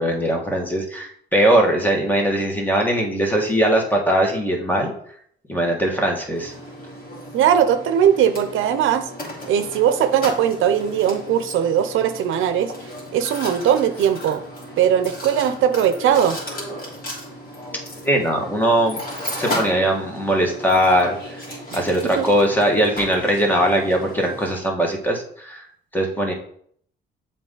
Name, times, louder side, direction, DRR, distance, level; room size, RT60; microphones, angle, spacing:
voice 1, 0.0-4.9 5.5-6.5 18.0-19.0 19.4-21.4 21.7-25.6 25.9-26.3, right 1 dB, 10° left, 0 dB, 1.7 m, -20 dB
Mechanisms, 6.3-24.5, equal, 45° left, 2.9 m, -35 dB
voice 2, 7.3-9.1 9.5-12.7 13.1-14.4 14.8-16.4 21.7-21.8 22.2-22.3, right 9 dB, 85° right, 9 dB, 0.6 m, -19 dB
7.4 x 4.0 x 3.9 m, 0.63 s
cardioid pair, 90°, 20 cm